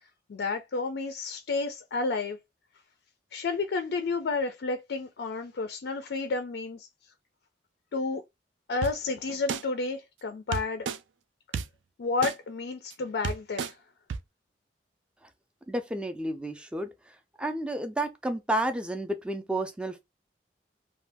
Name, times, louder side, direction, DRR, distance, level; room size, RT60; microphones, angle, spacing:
voice 1, 0.3-2.4 3.3-7.1 7.9-8.2 8.7-10.9 12.0-13.8, left 3 dB, 65° left, 0.4 m, -31 dB
sound 1, 8.8-8.9 9.5-9.6 10.5-11.0 11.5-11.6 12.2-12.3 12.9-13.0 13.2-13.7 14.1-14.2, right 6 dB, 85° right, 0.3 m, -30 dB
voice 2, 15.7-16.9 17.4-20.0, right 1 dB, 5° right, 0.4 m, -31 dB
2.6 x 2.3 x 3.4 m
head